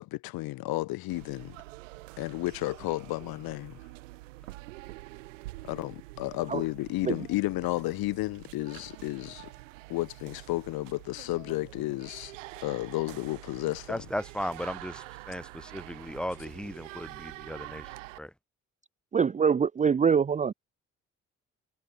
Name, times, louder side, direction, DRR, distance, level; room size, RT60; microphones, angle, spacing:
voice 1, 0.0-1.6 2.2-3.8 5.6-9.5 9.9-12.4 12.6-14.0, left 19 dB, 70° left, 2.5 m, -32 dB
sound 1, 1.1-18.2, right 20 dB, 80° right, 2.2 m, -46 dB
voice 2, 13.9-18.3, equal, ahead, 4.0 m, -36 dB
voice 3, 19.1-20.5, right 6 dB, 20° right, 0.5 m, -24 dB
figure-of-eight pair, 40°, 38 cm